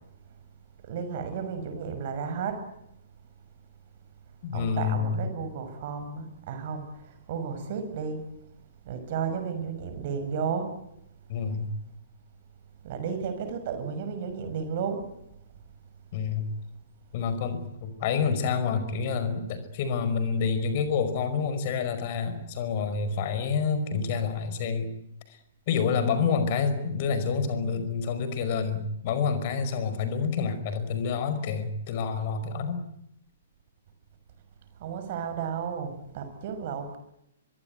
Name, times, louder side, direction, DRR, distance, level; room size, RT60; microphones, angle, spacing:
voice 1, 0.8-2.6 4.5-8.2 8.9-10.7 12.8-15.0 34.8-37.0, right 6 dB, 45° right, 9 dB, 6.2 m, -33 dB
voice 2, 4.4-5.2 11.3-11.7 16.1-16.5 17.1-24.9 25.3-25.4 25.7-32.8, left 5 dB, 40° left, 11 dB, 5.2 m, -28 dB
24.0 x 23.5 x 9.4 m, 0.79 s
figure-of-eight pair, 115°, 0 cm